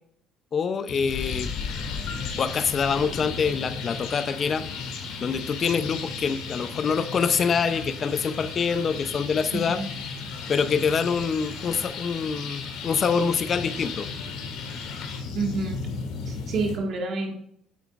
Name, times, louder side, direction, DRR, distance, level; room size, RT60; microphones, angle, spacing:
voice 1, 0.5-1.5 2.4-4.7 5.2-9.8 10.5-14.1, left 6 dB, 35° left, 12 dB, 0.7 m, -25 dB
sound 1, 0.9-16.8, left 4 dB, 90° left, 1.9 m, -37 dB
sound 2, 1.1-15.2, left 6 dB, 75° left, 1.8 m, -37 dB
voice 2, 9.5-9.9 15.4-15.8 16.3-17.4, right 3 dB, 50° right, 2 dB, 1.9 m, -28 dB
9.3 x 7.9 x 2.5 m, 0.68 s
cardioid pair, 130°, 0 cm